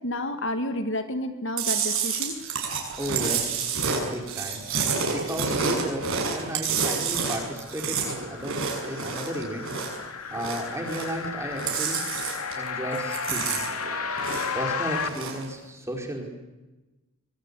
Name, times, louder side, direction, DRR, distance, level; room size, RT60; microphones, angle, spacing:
voice 1, 0.0-2.4, left 1 dB, 55° left, 8 dB, 1.9 m, -30 dB
Chewing mastication, 1.6-10.0 10.3-11.3 11.5-12.7 12.9-14.6 15.0-15.4, right 5 dB, 65° right, 7.4 m, -29 dB
voice 2, 3.0-4.6 5.1-8.6 8.9-9.7 10.3-12.0 12.5-13.7 14.5-16.3, right 1 dB, 10° right, 2 dB, 4.8 m, -34 dB
sound 1, 6.7-15.1, left 5 dB, 80° left, 2.4 m, -34 dB
25.5 x 23.0 x 8.4 m, 1.1 s
head